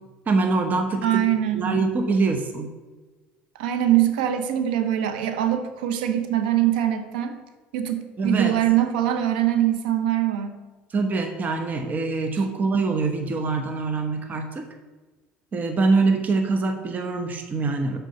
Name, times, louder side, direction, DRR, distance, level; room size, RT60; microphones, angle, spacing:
voice 1, 0.3-1.2 1.5-2.7 8.2-8.6 10.9-14.7 15.5-18.0, right 3 dB, 35° right, 4 dB, 1.0 m, -24 dB
voice 2, 1.0-1.9 3.6-7.4 7.7-10.5, right 11 dB, 85° right, 8 dB, 0.8 m, -23 dB
6.4 x 4.9 x 6.9 m, 1.3 s
hypercardioid pair, 75°, 5 cm